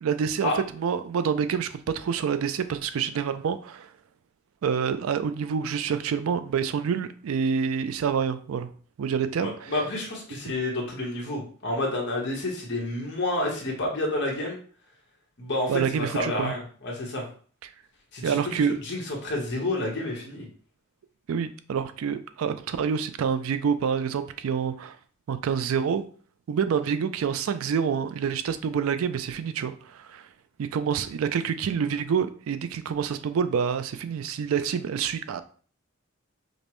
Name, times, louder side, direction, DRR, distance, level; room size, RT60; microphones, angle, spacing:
voice 1, 0.0-3.9 4.6-8.7 9.0-9.7 15.7-16.6 17.6-17.7 18.2-18.8 21.3-25.0 25.3-26.0 26.5-30.3 30.6-35.4, right 7 dB, 80° right, 0.4 m, -27 dB
voice 2, 9.4-14.6 15.4-17.2 18.1-20.5, left 1 dB, 55° left, 1.1 m, -29 dB
5.2 x 2.0 x 3.0 m
head